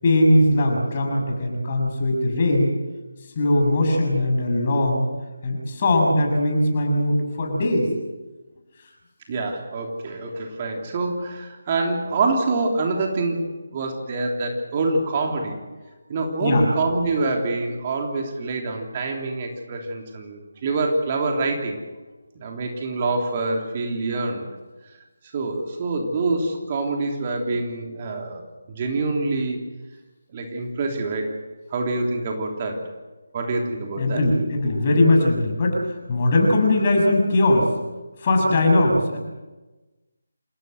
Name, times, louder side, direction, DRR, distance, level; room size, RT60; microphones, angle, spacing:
voice 1, 0.0-2.7 3.4-5.0 5.4-7.9 16.4-16.6 34.0-37.7 38.2-39.2, left 1 dB, 35° left, 2 dB, 7.3 m, -20 dB
voice 2, 9.3-15.6 16.1-21.8 22.3-24.5 25.3-29.6 30.3-31.4 31.7-32.8 33.3-34.2, right 3 dB, 30° right, 2 dB, 3.2 m, -26 dB
28.5 x 17.0 x 8.0 m, 1.2 s
figure-of-eight pair, 155°, 0 cm